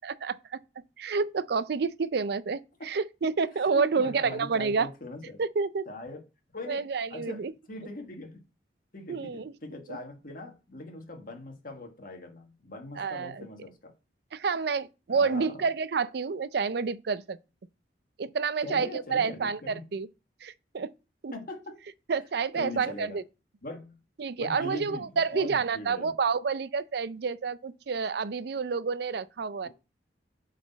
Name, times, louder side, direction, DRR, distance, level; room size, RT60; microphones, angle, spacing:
voice 1, 0.0-0.6 1.0-4.9 5.4-5.9 6.7-7.5 9.1-9.5 9.9-10.0 13.0-13.5 14.3-17.4 18.2-20.1 20.4-20.9 21.2-21.3 22.1-23.2 24.2-29.7, right 5 dB, 65° right, 0.5 m, -29 dB
voice 2, 3.5-5.4 5.9-8.4 8.9-13.9 15.1-15.6 18.6-19.9 21.3-21.8 22.6-23.2 23.6-24.0 24.4-26.1 29.6-29.7, left 2 dB, 50° left, 1.6 m, -41 dB
8.2 x 4.2 x 4.1 m
head